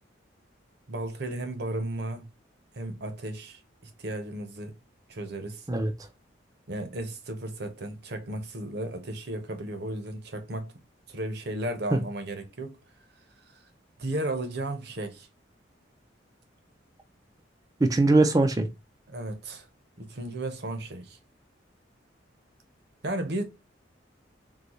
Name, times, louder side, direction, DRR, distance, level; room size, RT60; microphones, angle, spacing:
voice 1, 0.9-2.3 2.7-3.6 4.0-4.7 5.1-5.7 6.7-10.7 11.1-12.8 14.0-15.3 19.1-19.7 20.0-21.2 23.0-23.4, right 1 dB, 60° right, 0.8 m, -34 dB
voice 2, 17.8-18.7, right 2 dB, 20° right, 0.4 m, -21 dB
3.9 x 2.3 x 2.9 m
head